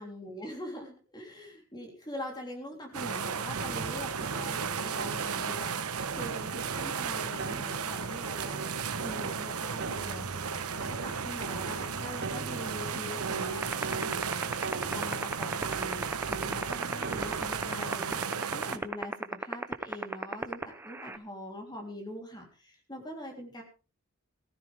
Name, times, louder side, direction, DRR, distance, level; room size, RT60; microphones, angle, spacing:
voice 1, 0.0-5.8 6.2-8.6 9.0-16.0 16.3-23.6, left 1 dB, 20° left, 1 dB, 3.4 m, -43 dB
sound 1, 2.9-18.8, right 6 dB, 90° right, 1.1 m, -35 dB
sound 2, 3.6-17.7, right 4 dB, 50° right, 0.8 m, -41 dB
sound 3, 13.6-21.2, right 2 dB, 10° right, 0.8 m, -30 dB
16.5 x 14.5 x 3.5 m, 0.33 s
head